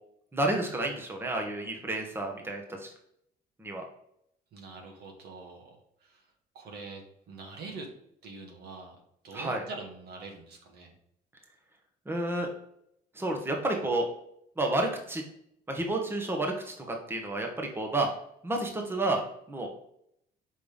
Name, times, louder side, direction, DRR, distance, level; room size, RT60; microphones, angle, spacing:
voice 1, 0.3-2.9 3.6-3.8 9.3-9.6 12.1-12.5 13.1-14.1 14.6-15.2 15.7-18.1 18.4-19.2 19.5-19.7, right 2 dB, 15° right, 2 dB, 1.2 m, -30 dB
voice 2, 4.5-6.3 6.5-7.0 7.3-7.9 8.2-9.0 9.2-10.9, right 3 dB, 70° right, 1 dB, 1.8 m, -44 dB
5.5 x 3.3 x 5.1 m, 0.73 s
cardioid pair, 110°, 17 cm